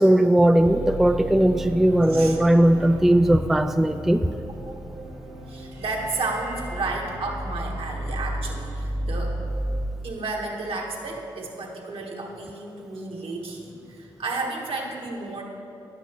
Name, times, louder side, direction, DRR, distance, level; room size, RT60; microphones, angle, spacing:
voice 1, 0.0-4.3, right 1 dB, 5° right, 9 dB, 0.3 m, -18 dB
sound 1, 0.6-9.8, right 1 dB, 90° right, 1.3 m, -33 dB
voice 2, 5.5-9.4 10.0-15.4, right 3 dB, 65° right, -1 dB, 1.4 m, -32 dB
10.0 x 8.3 x 3.0 m, 2.8 s
supercardioid pair, 45°, 10 cm